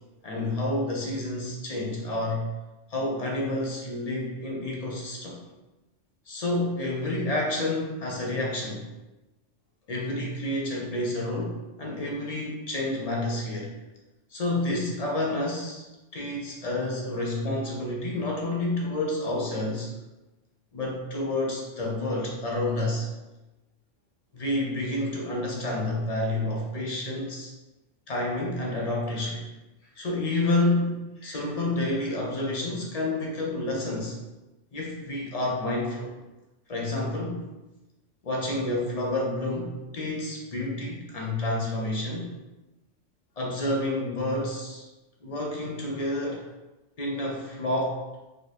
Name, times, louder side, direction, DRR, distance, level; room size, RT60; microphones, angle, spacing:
voice 1, 0.2-2.5 2.9-5.4 6.3-8.9 9.9-13.7 14.3-15.9 16.1-19.9 20.7-23.1 24.3-27.5 28.1-29.4 30.0-34.2 34.7-36.1 36.7-37.4 38.2-42.3 43.4-44.9 45.2-46.4 47.0-48.0, left 1 dB, 45° left, -2 dB, 0.5 m, -29 dB
2.8 x 2.4 x 4.2 m, 1.1 s
omnidirectional pair, 1.3 m